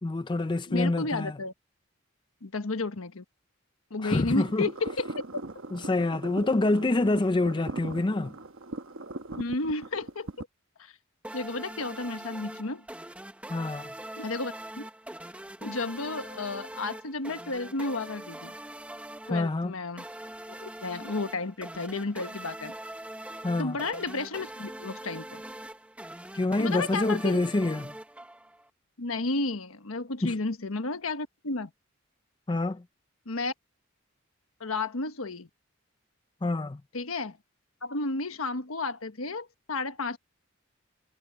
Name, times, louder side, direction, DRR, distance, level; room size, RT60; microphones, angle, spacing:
voice 1, 0.0-1.4 4.0-4.7 5.7-8.3 13.5-13.9 19.3-19.7 23.4-23.8 26.3-27.9 30.2-30.3 32.5-32.8 36.4-36.8, left 2 dB, 20° left, 0.4 m, -26 dB
voice 2, 0.7-1.5 2.4-3.2 3.9-5.4 9.4-10.5 10.8-10.9 11.3-12.8 14.2-14.9 15.6-18.5 19.3-20.0 20.6-22.7 23.6-25.4 26.6-27.4 29.0-31.7 33.3-33.5 34.6-35.5 36.9-37.4 37.8-40.2, left 3 dB, 85° left, 1.3 m, -32 dB
sound 1, 4.3-10.4, right 2 dB, 65° right, 1.1 m, -40 dB
sound 2, 11.2-28.7, right 1 dB, 5° right, 1.1 m, -43 dB
head